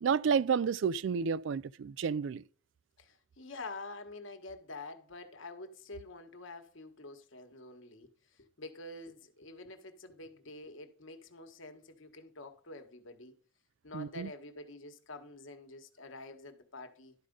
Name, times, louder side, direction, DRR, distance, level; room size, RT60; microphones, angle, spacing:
voice 1, 0.0-2.4 13.9-14.3, right 6 dB, 65° right, 0.4 m, -30 dB
voice 2, 3.0-13.4 13.8-17.1, left 2 dB, 70° left, 1.4 m, -47 dB
11.5 x 5.0 x 5.3 m
head